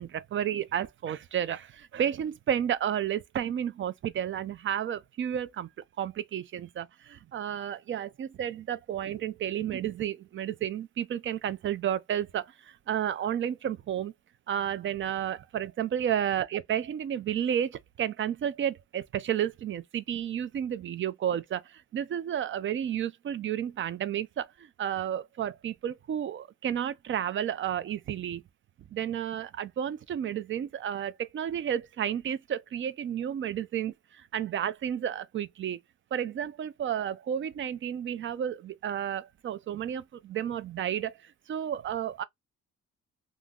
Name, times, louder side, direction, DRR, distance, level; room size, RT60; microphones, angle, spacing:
voice 1, 0.0-5.7 6.0-14.1 14.5-28.4 28.9-35.8 36.1-41.2 41.5-42.2, right 9 dB, 40° right, 0.4 m, -32 dB
2.4 x 2.0 x 3.5 m
cardioid pair, 90°, 30 cm